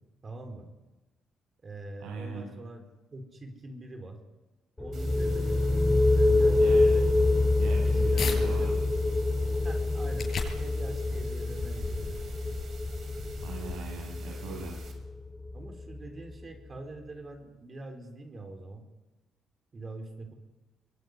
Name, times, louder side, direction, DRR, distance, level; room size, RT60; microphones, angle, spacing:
voice 1, 0.2-0.7 1.6-2.8 3.1-4.2 4.8-7.1 7.8-9.2 9.6-12.3 15.5-18.8 19.7-20.3, right 2 dB, 35° right, 5 dB, 4.6 m, -44 dB
voice 2, 2.0-2.5 6.6-6.9 7.6-8.7 13.4-14.8, right 4 dB, 90° right, -1 dB, 7.4 m, -40 dB
sound 1, 4.8-16.3, left 2 dB, 10° left, 2.5 m, -26 dB
sound 2, 4.9-14.9, right 6 dB, 60° right, 6.7 m, -52 dB
sound 3, 8.2-8.4 8.9-14.2, left 5 dB, 55° left, 7.4 m, -39 dB
23.5 x 22.5 x 9.9 m, 1.2 s
cardioid pair, 90°, 0 cm